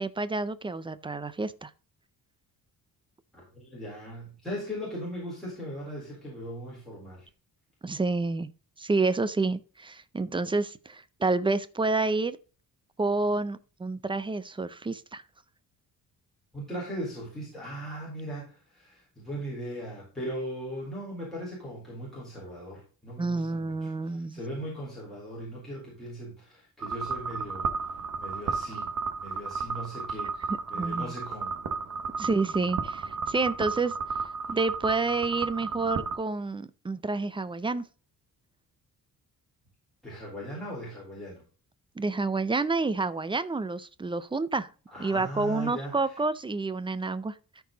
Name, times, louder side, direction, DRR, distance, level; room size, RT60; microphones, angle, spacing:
voice 1, 0.0-1.7 7.8-8.5 8.8-12.4 13.0-15.2 23.2-24.4 30.7-31.1 32.2-33.9 34.5-37.8 42.0-44.7 45.0-47.3, right 3 dB, 15° right, 0.4 m, -29 dB
voice 2, 3.3-7.3 16.5-28.9 29.2-31.6 34.5-34.6 40.0-41.4 44.9-46.2, equal, ahead, 4.0 m, -39 dB
sound 1, 26.8-36.2, right 5 dB, 55° right, 1.1 m, -33 dB
13.5 x 4.8 x 3.8 m
wide cardioid pair, 165°, 36 cm